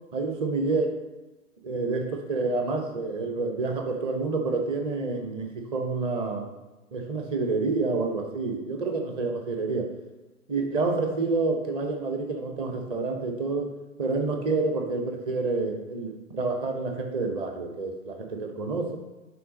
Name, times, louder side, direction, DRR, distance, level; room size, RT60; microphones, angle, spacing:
voice 1, 0.1-0.9 1.6-6.5 6.9-9.9 10.5-13.7 14.0-19.0, right 3 dB, 15° right, 3 dB, 0.6 m, -28 dB
6.8 x 3.5 x 5.0 m, 1.1 s
figure-of-eight pair, 110°, 42 cm